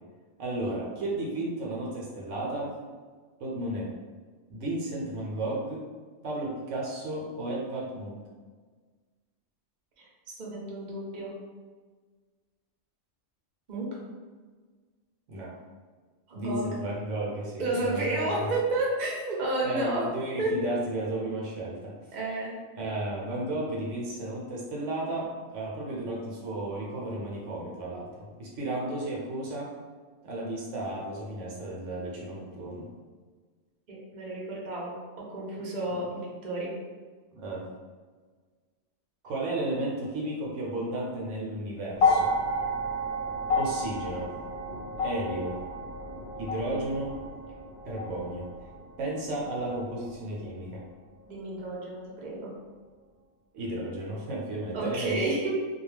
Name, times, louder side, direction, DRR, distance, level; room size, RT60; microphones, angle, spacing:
voice 1, 0.4-2.7 3.4-3.9 4.5-5.8 6.2-8.2 15.3-15.5 16.3-18.5 19.6-21.9 22.8-29.7 30.2-32.9 35.9-36.0 37.3-37.6 39.2-42.3 43.5-44.3 45.0-45.6 46.4-47.1 47.9-48.5 49.0-50.8 53.5-55.2, right 1 dB, 70° right, -3 dB, 0.9 m, -33 dB
voice 2, 10.4-11.3 13.7-13.9 16.3-16.7 17.6-20.0 20.4-20.5 22.1-22.5 33.9-34.9 35.3-36.7 51.2-52.5 54.7-55.5, right 2 dB, 45° right, -4 dB, 0.7 m, -31 dB
sound 1, 41.9-50.3 51.3-51.4, left 2 dB, 60° left, 0.7 m, -31 dB
2.3 x 2.2 x 3.2 m, 1.5 s
omnidirectional pair, 1.4 m